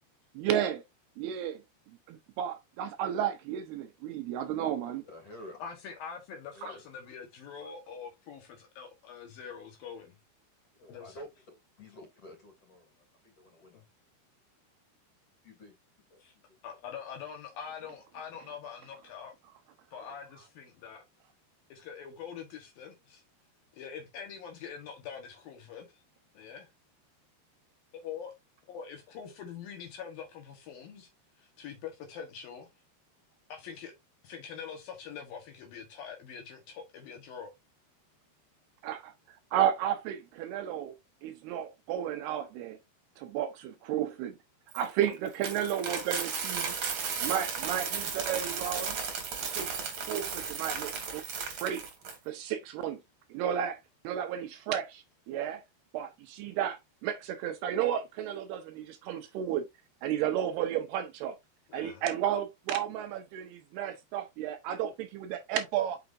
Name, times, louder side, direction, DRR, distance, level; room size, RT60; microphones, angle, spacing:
voice 1, 0.4-0.8 1.2-1.6 2.1-5.0 38.8-39.1 39.5-40.9 41.2-42.8 43.2-44.4 44.7-46.8 47.2-49.0 49.6-49.7 50.0-51.2 51.6-51.8 52.3-53.0 53.3-53.8 54.0-55.6 55.9-59.7 60.0-61.4 61.7-66.0, right 10 dB, 80° right, 2.6 m, -32 dB
voice 2, 5.0-5.6 6.5-6.8 10.7-13.8 15.4-15.7 16.1-16.6, left 1 dB, 35° left, 3.7 m, -50 dB
voice 3, 5.6-10.2 10.8-11.2 16.2-16.3 16.6-19.3 19.9-21.0 21.7-23.2 23.7-25.9 26.3-26.7 28.0-28.3 28.7-31.1 31.4-32.7 33.5-33.9 34.2-37.5 61.7-62.0, left 7 dB, 65° left, 2.8 m, -44 dB
Coin (dropping), 44.7-52.1, right 6 dB, 50° right, 2.3 m, -35 dB
6.8 x 6.0 x 2.6 m
omnidirectional pair, 5.0 m